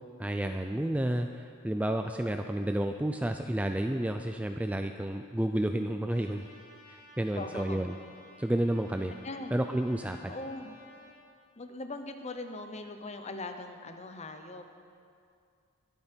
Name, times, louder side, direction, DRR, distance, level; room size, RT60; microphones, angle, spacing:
voice 1, 0.2-6.4 6.9-8.0 8.4-9.1 9.5-10.3, right 1 dB, 5° right, 6 dB, 0.3 m, -31 dB
Trumpet, 6.1-11.2, left 1 dB, 15° left, 3.2 m, -55 dB
voice 2, 7.3-7.9 9.2-9.5 10.3-10.7 11.6-14.7, left 2 dB, 30° left, 7 dB, 0.8 m, -40 dB
22.0 x 8.7 x 4.5 m, 2.3 s
head